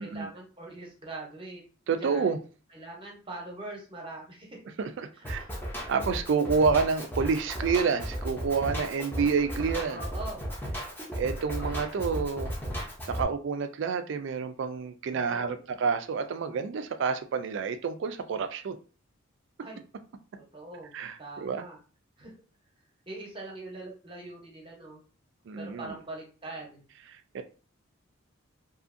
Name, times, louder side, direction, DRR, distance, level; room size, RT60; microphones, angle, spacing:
voice 1, 0.0-1.6 2.0-2.4 2.7-4.6 5.4-5.5 9.9-10.5 15.1-15.7 19.6-19.8 20.5-20.9 21.2-21.8 22.2-22.3 23.1-25.0 25.6-26.9, right 2 dB, 25° right, -1 dB, 0.8 m, -42 dB
voice 2, 1.9-2.4 4.8-5.4 5.9-10.0 11.2-12.5 13.1-18.8 20.9-21.6 25.5-25.9 27.1-27.4, right 5 dB, 60° right, 9 dB, 0.3 m, -29 dB
Drum kit, 5.2-13.2, equal, 10° left, 0.6 m, -35 dB
2.7 x 2.5 x 2.5 m, 0.36 s
head